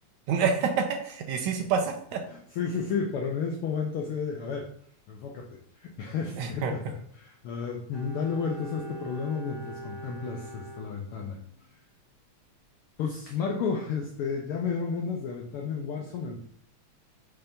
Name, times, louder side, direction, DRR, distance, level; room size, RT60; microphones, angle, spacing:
voice 1, 0.3-2.2 6.4-6.7, right 6 dB, 80° right, 4 dB, 2.0 m, -27 dB
voice 2, 2.3-4.7 5.1-11.4 13.0-16.4, left 5 dB, 85° left, 1 dB, 1.2 m, -32 dB
Bowed string instrument, 7.9-11.7 12.0-12.1, right 1 dB, 25° left, 0.5 m, -43 dB
5.8 x 3.3 x 5.2 m, 0.63 s
omnidirectional pair, 3.3 m